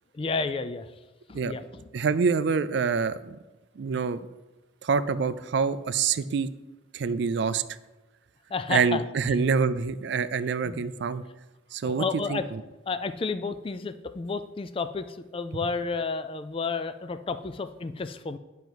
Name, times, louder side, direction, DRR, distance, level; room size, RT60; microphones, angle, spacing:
voice 1, 0.1-0.9 1.3-1.7 8.5-9.0 9.3-9.4 10.6-10.9 11.8-12.5 12.9-18.4, left 4 dB, 25° left, 10 dB, 0.3 m, -31 dB
voice 2, 1.9-3.4 3.8-4.3 4.8-6.5 6.9-7.6 8.7-11.2 11.7-12.6, right 5 dB, 60° right, 14 dB, 0.4 m, -26 dB
9.4 x 5.3 x 4.6 m, 1.1 s
head